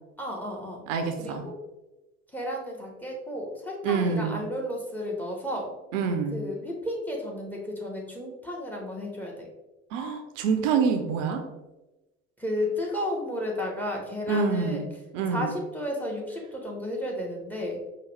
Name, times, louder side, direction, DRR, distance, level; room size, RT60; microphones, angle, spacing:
voice 1, 0.2-0.8 1.2-1.5 2.3-5.7 6.3-9.5 12.4-14.8 15.3-17.8, left 1 dB, 5° left, 0 dB, 1.0 m, -33 dB
voice 2, 0.9-1.5 3.8-4.4 5.9-6.4 9.9-11.4 14.3-14.9 15.1-15.5, right 5 dB, 70° right, 6 dB, 0.6 m, -26 dB
4.7 x 2.3 x 3.2 m, 1.0 s
figure-of-eight pair, 60°, 39 cm